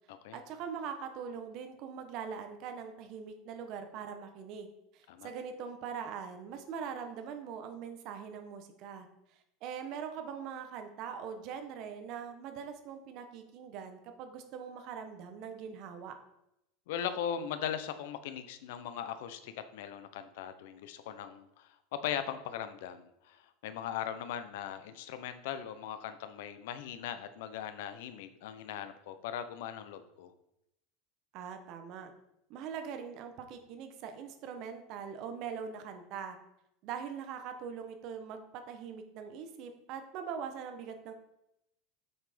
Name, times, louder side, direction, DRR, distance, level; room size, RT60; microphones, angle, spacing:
voice 1, 0.3-9.1 9.6-16.1 31.3-32.1 32.5-36.4 36.8-41.1, right 7 dB, 40° right, 7 dB, 1.1 m, -42 dB
voice 2, 16.9-21.7 22.0-30.3, left 9 dB, 65° left, 11 dB, 0.8 m, -39 dB
8.0 x 5.8 x 5.1 m, 0.83 s
supercardioid pair, 180°, 0 cm